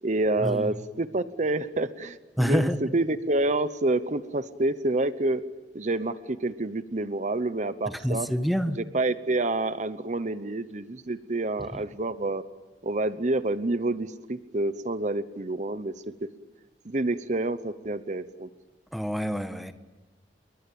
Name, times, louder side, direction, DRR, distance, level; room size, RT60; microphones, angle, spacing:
voice 1, 0.0-5.4 5.7-8.3 8.7-12.4 12.8-15.9 16.8-18.5, right 2 dB, 40° right, 0.9 m, -28 dB
voice 2, 2.4-2.8 8.0-8.8 18.9-19.7, equal, ahead, 1.4 m, -26 dB
29.5 x 22.5 x 8.7 m
head